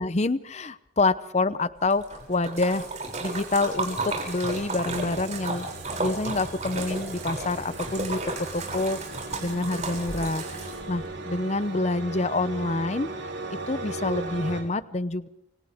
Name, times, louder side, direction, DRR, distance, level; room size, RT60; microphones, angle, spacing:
voice 1, 0.0-2.9 3.2-5.7 6.0-13.1 13.7-15.3, left 2 dB, 35° left, 15 dB, 0.7 m, -27 dB
Splash splatter, 1.9-11.0, right 3 dB, 35° right, 6.9 m, -33 dB
sound 1, 3.1-14.6, right 2 dB, 85° right, 6.1 m, -38 dB
29.5 x 27.0 x 3.6 m, 0.80 s
head